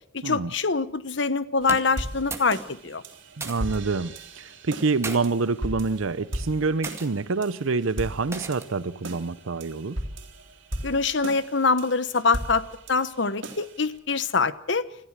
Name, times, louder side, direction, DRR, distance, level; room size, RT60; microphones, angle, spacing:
voice 1, 0.1-3.0 10.8-14.8, left 4 dB, 65° left, 1.0 m, -24 dB
sound 1, 1.6-2.6 2.8-3.8 4.7-5.2 6.0-6.2 6.8-7.1 8.3-8.8, right 3 dB, 15° right, 2.0 m, -37 dB
sound 2, 1.6-14.0, right 1 dB, 70° right, 3.3 m, -38 dB
voice 2, 3.4-10.0, right 4 dB, 90° right, 0.7 m, -27 dB
26.5 x 14.5 x 7.4 m
head